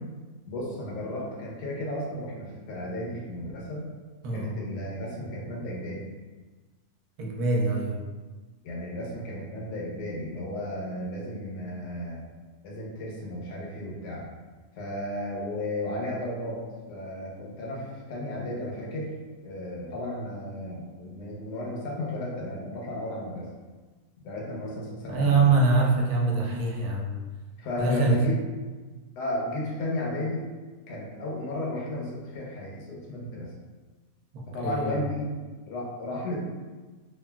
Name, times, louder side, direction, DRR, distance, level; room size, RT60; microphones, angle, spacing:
voice 1, 0.5-3.9 4.3-6.0 8.6-12.2 12.6-14.3 14.8-16.6 16.9-19.1 19.4-23.5 24.2-25.4 27.6-28.4 29.2-30.4 30.9-33.5 34.5-35.3 35.7-36.4, left 1 dB, 80° left, -4 dB, 1.3 m, -34 dB
voice 2, 7.2-8.0 25.1-27.1 27.8-28.2 34.3-34.9, right 3 dB, 75° right, -1 dB, 1.1 m, -24 dB
3.2 x 2.4 x 2.2 m, 1.3 s
omnidirectional pair, 1.7 m